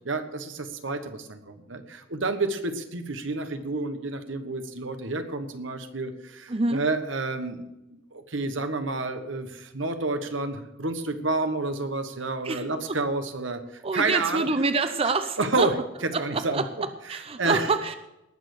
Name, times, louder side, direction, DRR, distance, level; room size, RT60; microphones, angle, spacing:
voice 1, 0.0-14.5 15.4-15.7 16.0-16.6 17.1-17.7, right 3 dB, 80° right, 8 dB, 1.3 m, -29 dB
voice 2, 6.5-6.8 12.4-13.0 13.8-15.7 16.1-17.9, right 3 dB, 30° right, 10 dB, 0.6 m, -27 dB
19.0 x 6.6 x 6.7 m, 0.91 s
head